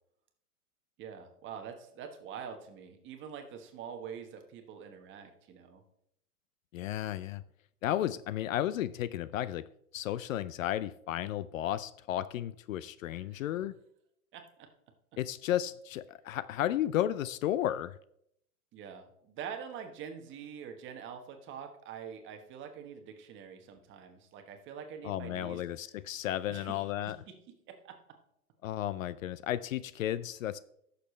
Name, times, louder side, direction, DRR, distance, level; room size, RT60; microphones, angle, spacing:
voice 1, 1.0-5.8 13.1-13.4 14.3-14.4 18.7-25.6 26.5-26.8 27.7-27.9, right 7 dB, 25° right, 1.2 m, -45 dB
voice 2, 6.7-7.4 7.8-9.7 9.9-13.8 15.2-18.0 25.0-27.2 28.6-30.6, left 12 dB, 60° left, 0.5 m, -33 dB
14.0 x 6.8 x 3.2 m
hypercardioid pair, 125°, 45 cm